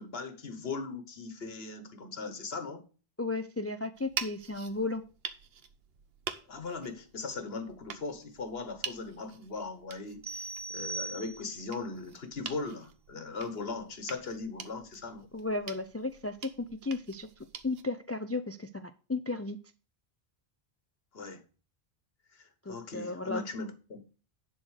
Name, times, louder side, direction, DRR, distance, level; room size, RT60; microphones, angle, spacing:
voice 1, 0.0-2.8 6.5-15.3 21.1-21.4 22.3-24.0, left 4 dB, 70° left, 1.5 m, -39 dB
voice 2, 3.2-5.0 15.3-17.3 17.6-19.6 22.7-23.4, left 3 dB, 25° left, 0.3 m, -34 dB
sound 1, 3.9-17.8, right 7 dB, 70° right, 1.0 m, -45 dB
sound 2, 10.2-11.8, right 3 dB, 40° right, 0.5 m, -39 dB
10.5 x 4.3 x 6.3 m
omnidirectional pair, 1.0 m